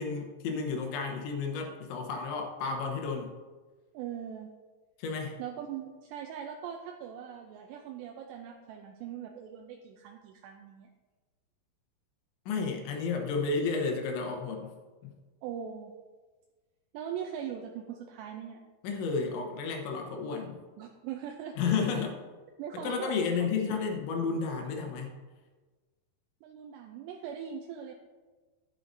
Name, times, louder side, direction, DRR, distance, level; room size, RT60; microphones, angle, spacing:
voice 1, 0.0-3.3 5.0-5.4 12.5-14.7 15.0-15.1 18.8-20.6 21.6-22.2 22.7-25.2, left 5 dB, 80° left, 2 dB, 3.4 m, -32 dB
voice 2, 3.9-4.5 5.4-10.9 15.4-15.9 16.9-18.6 20.8-21.6 22.6-23.3 26.4-27.9, right 8 dB, 80° right, 3 dB, 2.6 m, -41 dB
11.0 x 11.0 x 2.7 m, 1.3 s
omnidirectional pair, 5.3 m